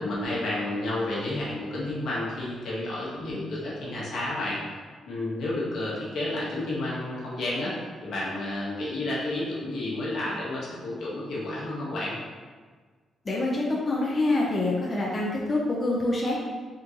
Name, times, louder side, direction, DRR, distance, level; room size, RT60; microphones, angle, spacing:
voice 1, 0.0-4.6 5.1-7.7 8.0-12.2, left 1 dB, 75° left, -6 dB, 1.0 m, -31 dB
voice 2, 13.3-16.3, left 2 dB, 30° left, -4 dB, 0.4 m, -26 dB
3.6 x 2.5 x 2.8 m, 1.5 s
cardioid pair, 130°, 0 cm